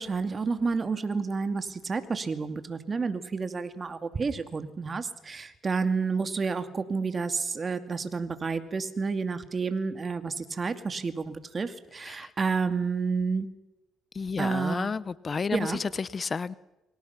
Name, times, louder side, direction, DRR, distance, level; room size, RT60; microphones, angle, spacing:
voice 1, 0.0-13.5 14.4-14.9 15.5-15.8, right 4 dB, 35° right, 2.4 m, -30 dB
voice 2, 14.1-16.5, left 5 dB, 35° left, 0.8 m, -31 dB
29.0 x 25.0 x 6.0 m
supercardioid pair, 80°, 0 cm